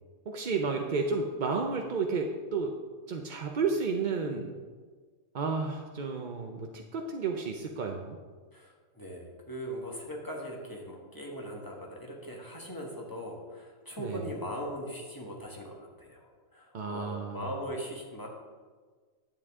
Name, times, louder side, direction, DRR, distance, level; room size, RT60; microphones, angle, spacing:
voice 1, 0.3-2.7 3.1-4.5 5.3-8.2 14.0-14.2 16.7-17.5, right 4 dB, 55° right, 3 dB, 0.5 m, -32 dB
voice 2, 8.5-18.3, equal, 15° left, -2 dB, 1.4 m, -40 dB
10.0 x 8.6 x 3.6 m, 1.5 s
omnidirectional pair, 1.5 m